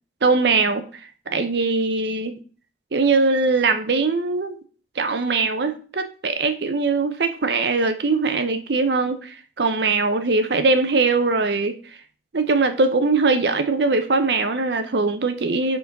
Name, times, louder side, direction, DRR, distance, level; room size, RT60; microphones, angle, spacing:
voice 1, 0.2-2.4 2.9-4.6 5.0-12.0 12.3-15.8, right 3 dB, 70° right, 8 dB, 0.7 m, -21 dB
6.0 x 3.9 x 5.8 m, 0.39 s
head